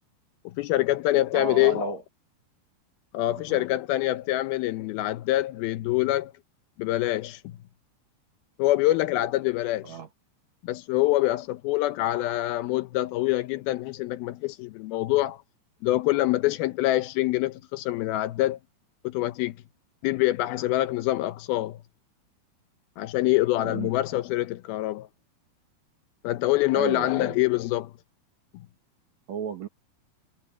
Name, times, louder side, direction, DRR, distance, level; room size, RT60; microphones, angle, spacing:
voice 1, 0.6-2.0 3.1-6.3 6.8-7.6 8.6-10.0 10.6-15.4 15.8-18.6 19.0-19.6 20.0-21.8 23.0-25.1 26.2-27.9, left 16 dB, 80° left, 2.5 m, -25 dB
voice 2, 1.3-2.0 3.3-3.6 9.8-10.1 23.6-23.9 26.7-27.4 29.3-29.7, right 8 dB, 60° right, 2.2 m, -34 dB
omnidirectional pair, 4.6 m